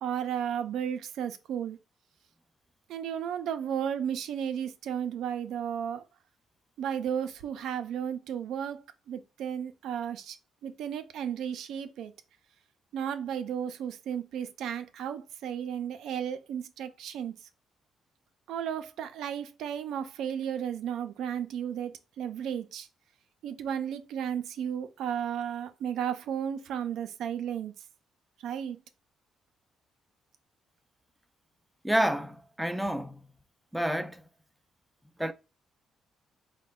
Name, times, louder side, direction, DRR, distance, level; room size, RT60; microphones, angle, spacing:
voice 1, 0.0-1.8 2.9-6.0 6.8-8.8 9.1-10.4 10.6-12.1 12.9-17.4 18.5-22.9 23.4-27.8 28.4-28.8, right 9 dB, 80° right, 0.4 m, -34 dB
voice 2, 31.8-33.2 33.7-34.3 35.2-35.3, right 1 dB, 5° right, 0.4 m, -29 dB
4.1 x 2.1 x 3.6 m
cardioid pair, 90°, 0 cm